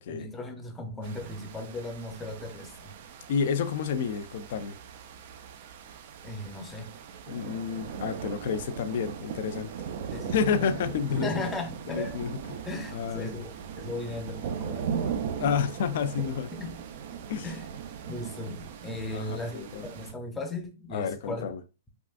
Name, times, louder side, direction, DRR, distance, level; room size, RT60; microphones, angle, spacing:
voice 1, 0.1-3.0 6.2-6.9 10.1-10.3 11.1-12.2 12.6-15.3 16.5-16.8 17.4-17.7 18.1-21.5, left 2 dB, 10° left, 0.7 m, -37 dB
sound 1, 1.0-20.1, right 7 dB, 50° right, 0.4 m, -39 dB
voice 2, 3.3-4.8 7.3-9.7 10.3-11.4 11.9-12.6 12.9-13.4 15.4-16.5 17.3-17.5 19.1-19.8 20.9-21.6, left 7 dB, 55° left, 0.4 m, -30 dB
3.5 x 2.4 x 2.4 m
hypercardioid pair, 135°, 0 cm